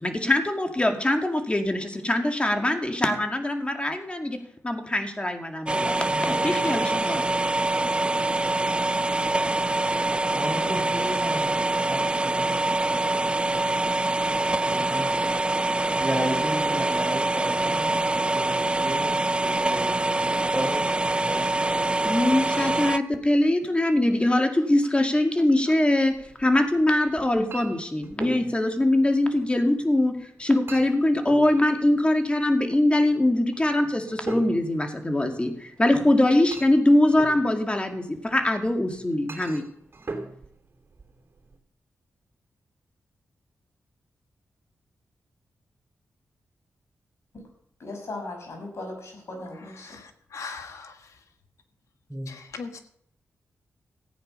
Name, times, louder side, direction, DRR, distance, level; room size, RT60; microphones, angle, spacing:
voice 1, 0.0-4.4 4.6-7.2 22.0-39.6, left 1 dB, 20° left, 2.2 m, -23 dB
sound 1, 5.7-23.0, right 2 dB, 20° right, 0.4 m, -25 dB
voice 2, 6.1-6.9 10.3-11.5 11.8-12.5 14.7-15.1 15.4-20.8 21.3-21.7 52.1-52.3, right 1 dB, ahead, 4.9 m, -34 dB
Chink clink, 26.0-41.6, right 3 dB, 45° right, 3.2 m, -42 dB
voice 3, 47.8-49.9, left 2 dB, 60° left, 6.2 m, -37 dB
voice 4, 49.8-51.1 52.3-52.8, left 4 dB, 75° left, 1.6 m, -40 dB
15.0 x 8.9 x 5.5 m
cardioid pair, 55°, 5 cm